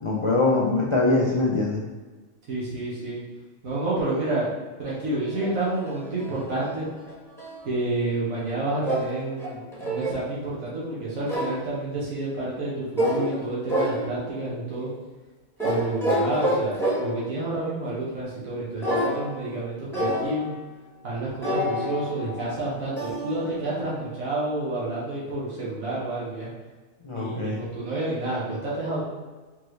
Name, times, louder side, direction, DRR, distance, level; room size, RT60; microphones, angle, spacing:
voice 1, 0.0-1.8 27.0-27.6, left 2 dB, 55° left, -5 dB, 0.3 m, -23 dB
voice 2, 2.5-3.2 3.6-4.5 4.8-6.9 7.6-14.9 15.6-20.5 21.0-26.5 27.1-29.0, right 2 dB, 80° right, -7 dB, 1.5 m, -29 dB
sound 1, 5.4-7.6 8.8-10.3 11.3-11.7 13.0-13.4 13.7-14.4 15.6-17.3 18.8-19.6 19.9-20.6 21.4-24.1, equal, ahead, 0.9 m, -28 dB
4.4 x 3.1 x 3.1 m, 1.3 s
omnidirectional pair, 1.4 m